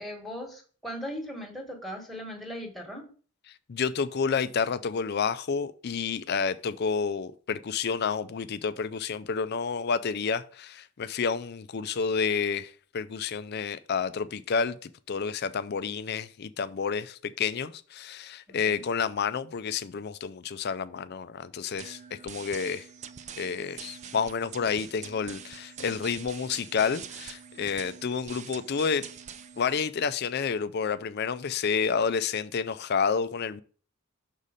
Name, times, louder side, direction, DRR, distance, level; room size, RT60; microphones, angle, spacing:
voice 1, 0.0-3.1 18.5-18.9, equal, ahead, 1.3 m, -38 dB
voice 2, 3.7-22.9 23.4-29.1 29.6-33.6, left 6 dB, 45° left, 0.4 m, -30 dB
sound 1, 21.8-29.8, right 7 dB, 30° right, 0.4 m, -44 dB
6.2 x 4.1 x 5.0 m
head